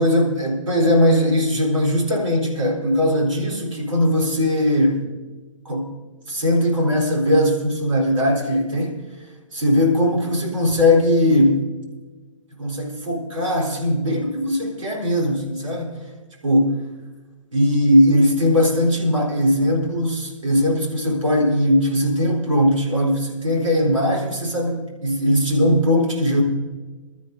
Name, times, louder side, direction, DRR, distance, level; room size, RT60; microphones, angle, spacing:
voice 1, 0.0-5.1 5.6-5.9 6.3-11.7 12.6-16.0 16.4-16.9 17.5-26.4, left 1 dB, 75° right, -1 dB, 3.9 m, -19 dB
23.0 x 13.0 x 2.7 m, 1.3 s
figure-of-eight pair, 125°, 17 cm